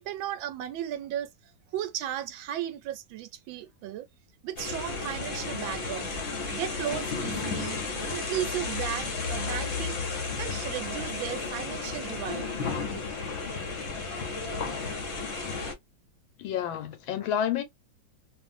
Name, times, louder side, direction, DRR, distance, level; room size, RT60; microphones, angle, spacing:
voice 1, 0.0-4.0 4.4-6.2 6.5-7.8 8.1-12.7, right 11 dB, 80° right, 1.3 m, -35 dB
dundas square, 4.6-15.7, left 4 dB, 50° left, 0.9 m, -33 dB
voice 2, 16.4-17.6, left 9 dB, 90° left, 1.5 m, -29 dB
3.0 x 2.6 x 2.5 m
omnidirectional pair, 2.1 m